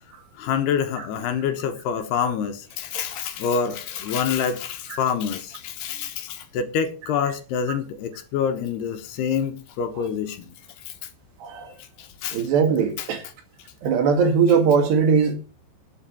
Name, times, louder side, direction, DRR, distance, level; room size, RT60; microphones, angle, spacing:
voice 1, 0.4-10.5 10.9-11.0 12.0-12.5 13.0-13.1, left 7 dB, 75° left, 3.1 m, -27 dB
voice 2, 11.4-11.7 12.3-13.2 13.8-15.4, right 6 dB, 70° right, 4.2 m, -20 dB
12.0 x 8.8 x 5.3 m
omnidirectional pair, 5.2 m